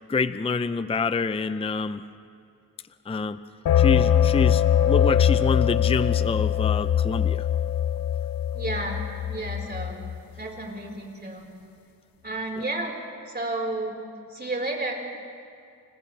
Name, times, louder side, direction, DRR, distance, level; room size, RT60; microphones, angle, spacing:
voice 1, 0.1-2.0 3.1-3.4 3.8-7.4, left 4 dB, 15° left, 12 dB, 0.5 m, -27 dB
sound 1, 3.7-10.2, left 10 dB, 75° left, 0.6 m, -22 dB
voice 2, 8.5-9.0 9.3-10.0 10.4-11.4 12.2-12.9 13.3-14.0 14.3-14.9, right 2 dB, 30° right, -1 dB, 4.7 m, -31 dB
30.0 x 29.5 x 3.4 m, 2.5 s
wide cardioid pair, 100°, 35 cm